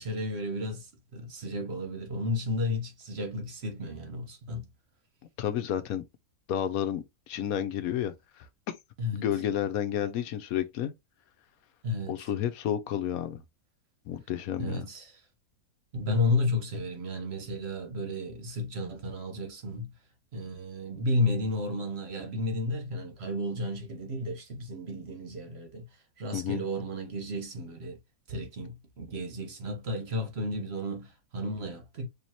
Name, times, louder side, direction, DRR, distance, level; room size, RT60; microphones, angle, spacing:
voice 1, 0.0-4.7 9.0-9.3 11.8-12.3 14.6-15.1 15.9-19.9 20.3-25.9 26.2-28.0 28.3-32.1, left 2 dB, 50° right, 1.1 m, -32 dB
voice 2, 5.4-6.0 6.5-8.8 9.1-10.9 12.1-13.4 14.1-14.9 26.3-26.6, left 10 dB, 80° left, 1.1 m, -31 dB
4.6 x 2.8 x 2.8 m
omnidirectional pair, 1.5 m